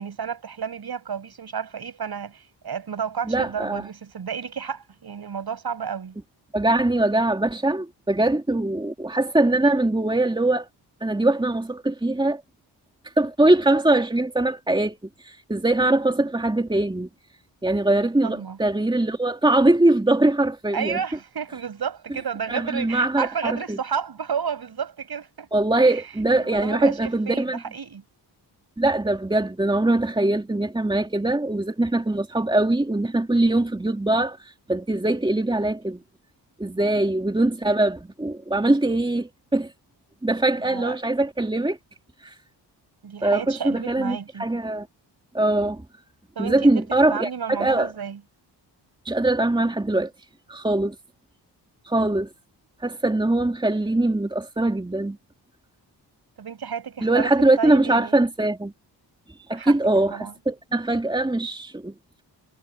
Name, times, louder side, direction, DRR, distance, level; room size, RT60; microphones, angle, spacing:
voice 1, 0.0-6.1 18.2-18.6 20.7-25.5 25.8-26.0 26.4-28.0 36.8-37.0 40.6-41.0 43.0-44.5 46.4-46.8 47.1-48.2 56.4-57.3 57.6-58.2 59.5-59.7 60.1-60.3, right 7 dB, 60° right, 7.5 m, -31 dB
voice 2, 3.3-3.8 6.5-10.7 11.0-12.4 13.2-15.0 15.3-17.1 17.6-21.0 22.5-23.8 25.5-27.6 28.8-34.4 34.7-36.0 36.6-39.7 40.2-41.8 42.2-42.3 43.2-44.9 45.3-45.8 46.4-47.9 49.0-50.1 50.5-51.0 51.8-52.3 52.8-55.2 57.0-58.7 59.5-61.9, right 2 dB, 10° right, 2.7 m, -22 dB
wide cardioid pair, 125°, 42 cm